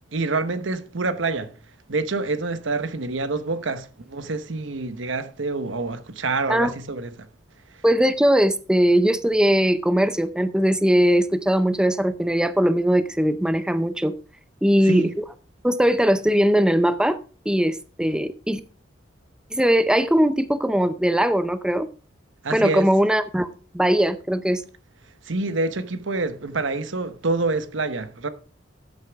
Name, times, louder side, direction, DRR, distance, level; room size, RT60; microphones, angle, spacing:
voice 1, 0.1-1.5 1.9-7.3 14.8-15.1 22.4-22.9 25.2-28.3, right 3 dB, 90° right, 1.0 m, -27 dB
voice 2, 7.8-14.1 14.6-15.2 15.6-17.2 17.5-18.6 19.5-21.9 22.5-23.5 23.7-24.6, equal, 5° right, 0.5 m, -20 dB
13.0 x 8.0 x 3.5 m
head